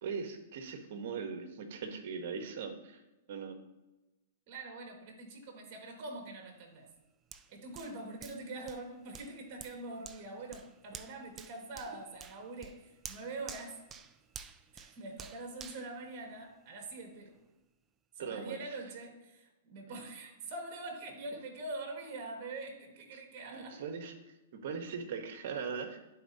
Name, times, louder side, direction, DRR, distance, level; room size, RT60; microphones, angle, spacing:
voice 1, 0.0-3.0 3.3-3.5 18.2-18.6 23.5-24.1 24.5-26.0, right 5 dB, 60° right, 6 dB, 1.1 m, -39 dB
voice 2, 4.5-6.9 7.5-13.8 14.7-17.4 18.1-23.8, right 2 dB, 40° right, 2 dB, 1.6 m, -44 dB
Hands, 7.3-16.8 17.3-17.4, right 6 dB, 20° right, 0.3 m, -51 dB
11.0 x 4.3 x 2.7 m, 1.0 s
hypercardioid pair, 135°, 0 cm